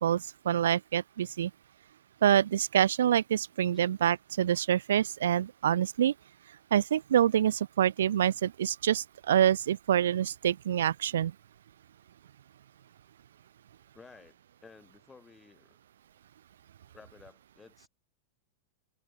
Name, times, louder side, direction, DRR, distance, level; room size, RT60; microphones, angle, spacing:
voice 1, 0.0-1.5 2.2-6.1 6.7-11.3, right 10 dB, 75° right, 0.3 m, -26 dB
voice 2, 13.9-15.8 16.9-17.9, left 5 dB, 15° left, 5.5 m, -55 dB
hypercardioid pair, 100°, 0 cm